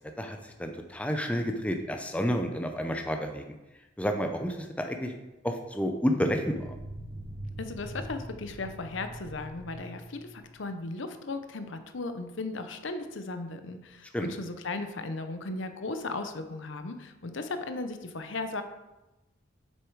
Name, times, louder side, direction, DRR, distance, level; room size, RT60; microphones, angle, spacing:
voice 1, 0.2-3.5 4.0-5.1 5.4-6.8 14.1-14.3, equal, 5° left, 4 dB, 0.6 m, -30 dB
sound 1, 6.1-10.6, right 1 dB, 30° right, 1.2 m, -43 dB
voice 2, 7.6-18.6, left 3 dB, 65° left, 8 dB, 0.8 m, -36 dB
7.4 x 6.4 x 4.7 m, 1.0 s
head